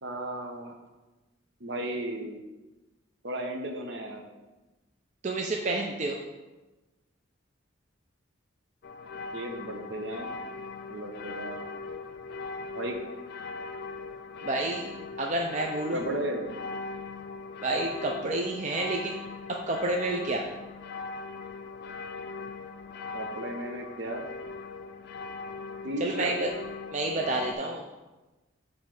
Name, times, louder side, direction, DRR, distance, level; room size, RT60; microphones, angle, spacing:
voice 1, 0.0-0.7 1.6-2.4 3.2-4.3 9.3-10.4 10.9-11.6 12.7-13.0 15.9-16.4 23.1-24.3 25.8-26.3, right 1 dB, 65° right, 3 dB, 0.9 m, -35 dB
voice 2, 5.2-6.2 14.4-14.9 15.2-16.0 17.6-19.2 19.5-20.4 26.0-26.5 26.9-27.8, right 2 dB, 35° right, 1 dB, 0.4 m, -29 dB
sound 1, 8.8-27.5, left 4 dB, 55° left, 0.4 m, -40 dB
7.8 x 3.2 x 4.8 m, 1.1 s
head